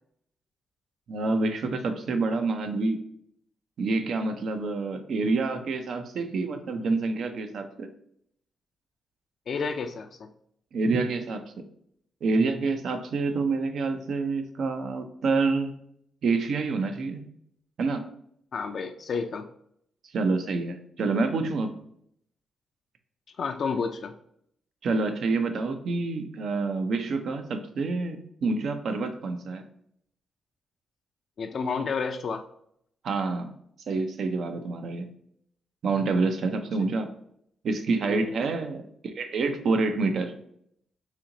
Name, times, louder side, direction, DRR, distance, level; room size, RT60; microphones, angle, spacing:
voice 1, 1.1-3.0 3.8-7.9 10.7-11.6 12.2-15.7 16.2-17.2 17.8-18.0 20.1-21.7 24.8-29.6 33.0-33.5 33.9-35.1 35.8-37.1 37.6-40.3, right 3 dB, 70° right, 7 dB, 0.5 m, -27 dB
voice 2, 9.5-10.3 18.5-19.4 23.4-24.1 31.4-32.4 38.0-38.4, left 5 dB, 65° left, 4 dB, 0.3 m, -30 dB
4.2 x 2.8 x 2.6 m, 0.69 s
supercardioid pair, 60°, 0 cm